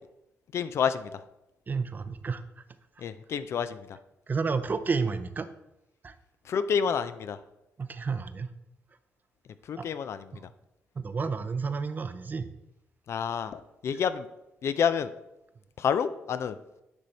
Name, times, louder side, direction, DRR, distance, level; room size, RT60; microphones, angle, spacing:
voice 1, 0.5-1.1 3.0-4.0 6.5-7.4 9.7-10.5 13.1-14.3 14.6-15.1 15.8-16.6, left 7 dB, 60° left, 12 dB, 0.4 m, -29 dB
voice 2, 1.7-2.4 4.3-5.5 6.0-6.1 7.8-8.5 9.8-9.9 11.0-12.5, right 4 dB, 35° right, 11 dB, 0.5 m, -30 dB
9.7 x 3.3 x 4.0 m, 0.90 s
cardioid pair, 70°, 5 cm